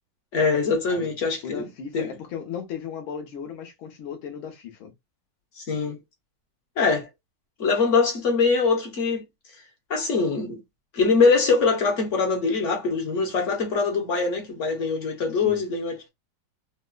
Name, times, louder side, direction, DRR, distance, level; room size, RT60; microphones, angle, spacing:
voice 1, 0.3-1.6 1.9-2.1 5.6-6.0 6.8-7.1 7.6-9.2 9.9-10.6 10.9-16.1, left 4 dB, 45° left, 1.1 m, -23 dB
voice 2, 1.4-4.9 15.4-15.6, left 7 dB, 70° left, 1.8 m, -36 dB
4.7 x 2.1 x 2.3 m
omnidirectional pair, 2.4 m